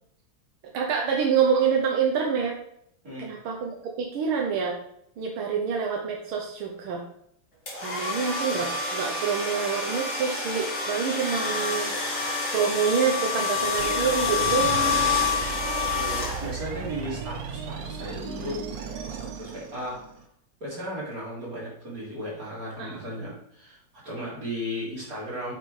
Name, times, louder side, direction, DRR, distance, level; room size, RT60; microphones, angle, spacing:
voice 1, 0.7-2.6 3.2-4.8 5.2-7.0 7.8-12.2 12.5-15.1 22.8-23.0, right 6 dB, 90° right, 0 dB, 1.8 m, -27 dB
sound 1, 7.7-16.8, left 4 dB, 35° left, 2.4 m, -28 dB
sound 2, 13.8-20.2, right 6 dB, 60° right, 1.0 m, -36 dB
voice 2, 15.3-18.6 18.9-20.0 20.6-23.8 24.0-25.5, equal, 45° right, -7 dB, 3.9 m, -36 dB
8.9 x 5.7 x 3.3 m, 0.70 s
omnidirectional pair, 2.2 m